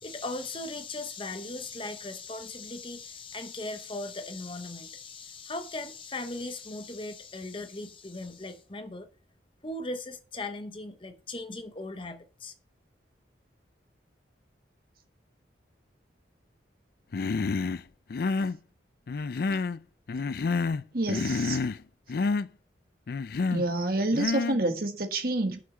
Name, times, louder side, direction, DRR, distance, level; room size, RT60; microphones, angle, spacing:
voice 1, 0.0-9.1 9.6-12.5, left 2 dB, 30° left, 0.8 m, -38 dB
Human voice, 17.1-17.8 18.1-18.6 19.1-19.8 20.1-20.8 21.1-21.8 22.1-22.5 23.1-23.7 24.1-24.6, left 4 dB, 55° left, 0.4 m, -28 dB
voice 2, 20.9-21.6 23.5-25.6, right 2 dB, 50° right, 1.4 m, -28 dB
6.2 x 5.8 x 7.0 m
head